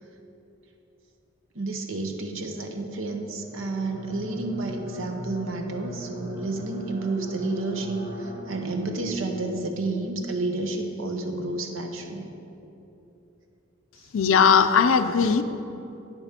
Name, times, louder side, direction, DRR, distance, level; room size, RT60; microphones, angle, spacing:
voice 1, 1.5-12.3, right 2 dB, 85° right, 4 dB, 0.9 m, -30 dB
sound 1, 3.4-10.3, right 1 dB, 25° right, 1.4 m, -39 dB
voice 2, 14.1-15.4, left 6 dB, 80° left, 11 dB, 0.5 m, -18 dB
9.1 x 7.4 x 5.1 m, 2.9 s
head